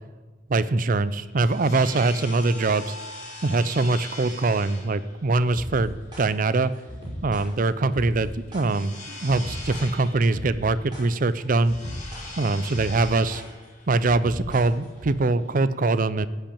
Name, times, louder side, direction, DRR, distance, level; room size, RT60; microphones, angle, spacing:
voice 1, 0.5-2.9 3.4-6.7 7.2-11.8 12.4-13.4 13.9-16.3, right 3 dB, 45° right, 15 dB, 0.5 m, -23 dB
sound 1, 1.0-15.6, left 2 dB, 35° left, 3.9 m, -42 dB
sound 2, 5.5-15.1, equal, 25° right, 5.2 m, -38 dB
15.5 x 5.8 x 8.7 m, 1.3 s
head